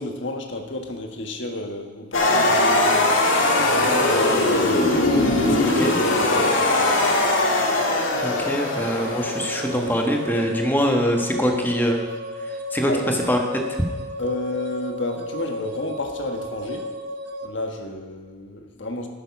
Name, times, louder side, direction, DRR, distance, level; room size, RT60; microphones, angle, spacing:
voice 1, 0.0-4.4 5.3-7.1 12.9-13.2 14.2-16.9 17.4-19.1, left 2 dB, 65° left, 4 dB, 1.5 m, -31 dB
sound 1, 2.1-10.3, left 2 dB, 80° left, 1.9 m, -20 dB
sound 2, 3.5-17.5, left 1 dB, 55° right, 0.9 m, -34 dB
voice 2, 5.6-5.9 8.2-12.0 12.7-12.9 13.3-13.4, equal, 10° left, 2 dB, 1.3 m, -23 dB
11.5 x 9.3 x 6.1 m, 1.4 s
head